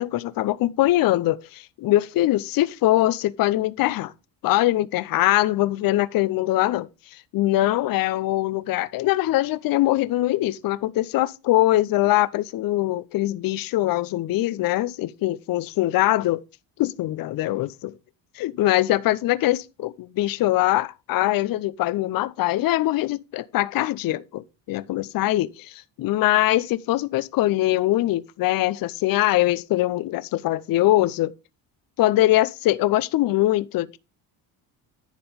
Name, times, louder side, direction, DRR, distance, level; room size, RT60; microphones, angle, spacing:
voice 1, 0.0-4.1 4.4-16.4 16.8-17.9 18.4-31.3 32.0-34.0, left 16 dB, 50° left, 0.6 m, -22 dB
10.5 x 4.3 x 5.1 m
supercardioid pair, 95°, 44 cm